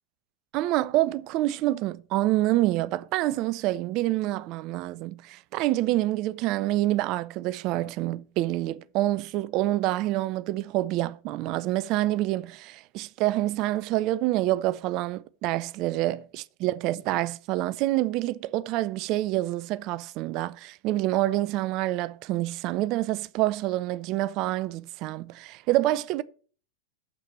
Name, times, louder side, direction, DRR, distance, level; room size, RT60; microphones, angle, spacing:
voice 1, 0.5-26.2, right 16 dB, 40° right, 0.5 m, -27 dB
7.6 x 6.0 x 7.7 m
figure-of-eight pair, 90°, 0 cm